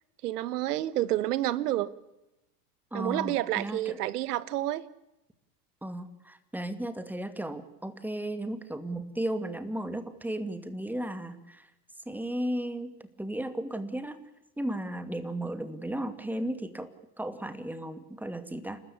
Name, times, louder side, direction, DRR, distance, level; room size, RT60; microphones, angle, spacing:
voice 1, 0.2-1.9 2.9-4.9, right 14 dB, 75° right, 1.4 m, -29 dB
voice 2, 2.9-4.0 5.8-11.7 12.1-14.2 14.6-16.9 17.2-18.8, right 1 dB, 5° right, 2.3 m, -35 dB
30.0 x 13.5 x 8.6 m
hypercardioid pair, 100°, 47 cm